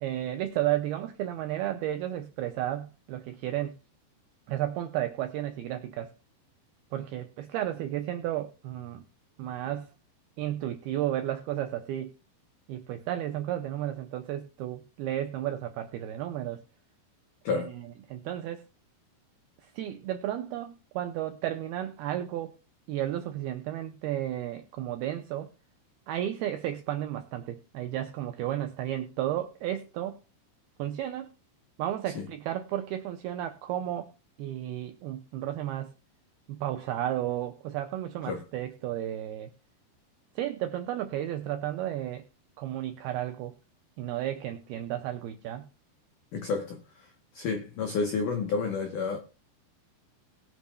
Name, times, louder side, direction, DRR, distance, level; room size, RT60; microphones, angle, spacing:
voice 1, 0.0-3.8 4.5-6.1 6.9-9.0 9.4-9.9 10.4-12.1 12.7-16.6 17.5-18.6 19.6-22.5 22.9-25.5 26.1-30.2 30.8-31.3 31.8-34.1 34.4-35.9 36.5-39.5 40.4-42.2 42.6-43.5 44.0-45.7, right 12 dB, 85° right, 2.2 m, -33 dB
voice 2, 46.3-46.8 47.3-49.2, left 4 dB, 80° left, 1.8 m, -30 dB
21.0 x 7.0 x 2.2 m
omnidirectional pair, 5.3 m